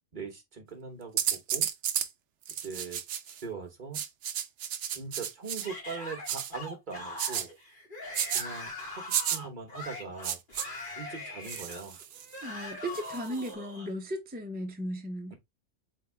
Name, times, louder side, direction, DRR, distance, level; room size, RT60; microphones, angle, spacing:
voice 1, 0.1-1.7 2.6-3.0 3.2-4.0 4.9-7.5 8.3-8.7 9.1-10.4 11.0-12.0, right 5 dB, 40° right, 1.2 m, -41 dB
sound 1, 1.2-2.1 2.5-3.4 3.9-5.7 6.3-6.5 7.2-7.5 8.1-8.4 9.1-9.4 10.2-10.7 11.4-12.3 12.9-13.5, right 9 dB, 70° right, 0.9 m, -32 dB
Yell / Screaming, 5.6-13.9, left 2 dB, 40° left, 2.2 m, -42 dB
voice 2, 12.4-15.3, equal, 15° right, 0.3 m, -36 dB
4.0 x 3.5 x 3.4 m
omnidirectional pair, 1.4 m